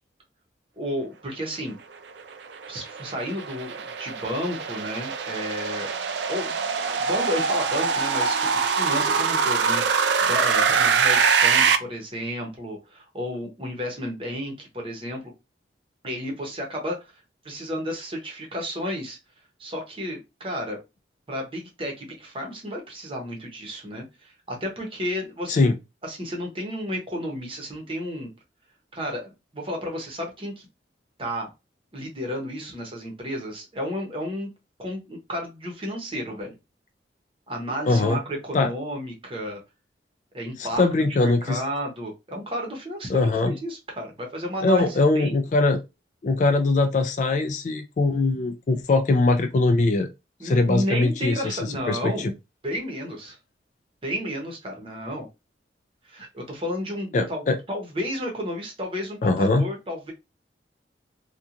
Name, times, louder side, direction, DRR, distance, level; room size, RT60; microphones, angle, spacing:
voice 1, 0.8-1.8 2.7-5.9 6.3-15.3 16.0-17.1 17.4-19.2 19.6-20.8 21.3-25.6 26.0-28.3 28.9-30.7 31.2-31.5 31.9-34.5 34.8-36.6 37.5-39.6 40.3-40.9 41.2-45.4 50.4-52.3 52.6-53.4 54.0-55.3 56.0-60.1, equal, 30° right, 0.8 m, -32 dB
sound 1, 2.2-11.8, right 6 dB, 75° right, 0.4 m, -23 dB
voice 2, 37.9-38.2 38.5-38.7 40.6-41.6 43.1-43.5 44.6-45.8 46.2-50.1 50.4-51.6 51.9-52.3 57.1-57.6 59.2-59.6, left 3 dB, 45° left, 0.3 m, -21 dB
2.8 x 2.3 x 2.5 m
head